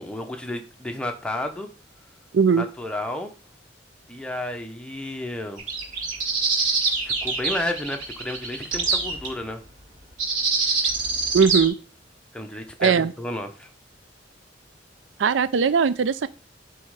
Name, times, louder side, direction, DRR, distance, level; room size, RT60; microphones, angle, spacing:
voice 1, 0.0-1.7 2.5-3.3 4.1-5.6 7.0-9.6 12.3-13.7, left 1 dB, 5° left, 4 dB, 0.8 m, -32 dB
voice 2, 2.3-2.6 11.3-11.7 12.8-13.1 15.2-16.3, right 6 dB, 80° right, 15 dB, 0.5 m, -19 dB
sound 1, 5.6-9.3 10.2-11.7, right 4 dB, 45° right, 1.9 m, -25 dB
7.8 x 3.1 x 4.8 m, 0.35 s
head